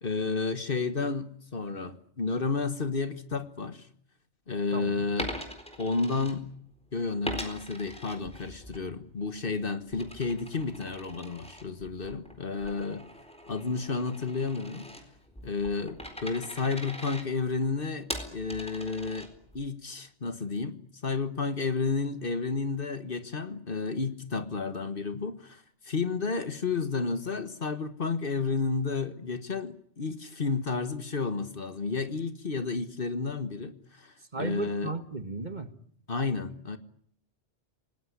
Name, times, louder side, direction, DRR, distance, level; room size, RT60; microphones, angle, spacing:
voice 1, 0.0-3.9 4.5-5.3 5.8-6.5 6.9-13.1 13.5-14.9 15.4-19.3 19.5-34.9 36.1-36.8, left 4 dB, 50° left, 11 dB, 1.6 m, -31 dB
voice 2, 4.7-5.1 34.3-35.7, right 4 dB, 40° right, 10 dB, 1.9 m, -35 dB
Coin (dropping), 5.1-6.8 7.2-8.8 9.2-19.7, equal, 5° left, 4.1 m, -42 dB
28.0 x 19.0 x 10.0 m, 0.65 s
omnidirectional pair, 1.2 m